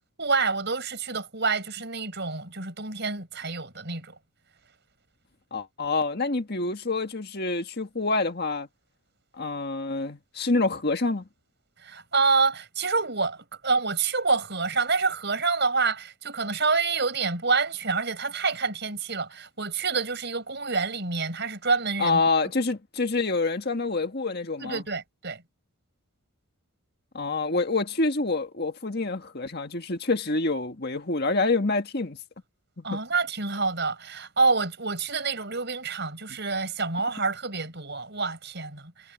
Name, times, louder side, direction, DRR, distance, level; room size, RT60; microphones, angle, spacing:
voice 1, 0.2-4.2 11.8-22.2 24.6-25.4 32.8-39.1, right 4 dB, 50° right, 5.5 m, -27 dB
voice 2, 5.5-8.7 9.3-11.3 22.0-24.8 27.1-32.2 32.8-33.0, left 3 dB, 45° left, 1.8 m, -27 dB
head